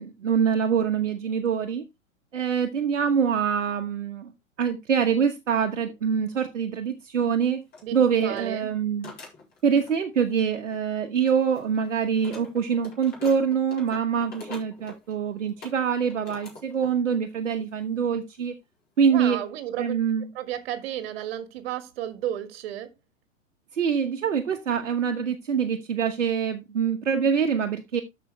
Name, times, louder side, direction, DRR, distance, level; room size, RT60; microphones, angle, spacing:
voice 1, 0.0-1.8 2.3-4.3 4.6-7.6 7.9-9.1 9.6-18.5 19.0-19.4 19.8-20.3 23.7-28.0, right 7 dB, 65° right, 1.3 m, -25 dB
sound 1, 7.2-7.3 7.7-7.8 8.3-8.5 9.0-10.0 10.3-10.9 11.3-17.0 17.3-17.6 18.3-18.4 19.0-19.3, left 3 dB, 25° left, 5.1 m, -45 dB
voice 2, 8.2-8.7 19.1-20.0 20.3-22.9, right 11 dB, 50° right, 1.8 m, -33 dB
13.5 x 5.3 x 3.2 m
figure-of-eight pair, 100°, 39 cm